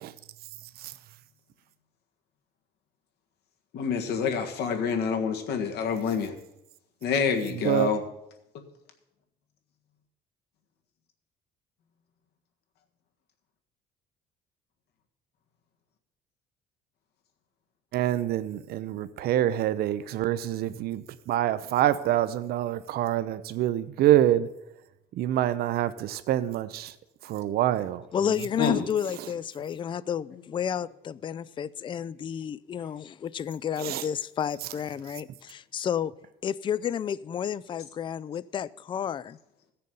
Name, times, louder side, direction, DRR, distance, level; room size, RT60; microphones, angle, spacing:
voice 1, 3.7-6.3 7.0-8.0 28.6-28.8, left 6 dB, 75° left, 1.7 m, -27 dB
voice 2, 17.9-24.5 25.2-26.9 27.3-28.0 33.8-34.0, right 12 dB, 65° right, 0.6 m, -26 dB
voice 3, 28.1-36.1 36.4-39.4, left 8 dB, 30° left, 0.3 m, -31 dB
15.0 x 6.7 x 5.4 m
cardioid pair, 110°, 17 cm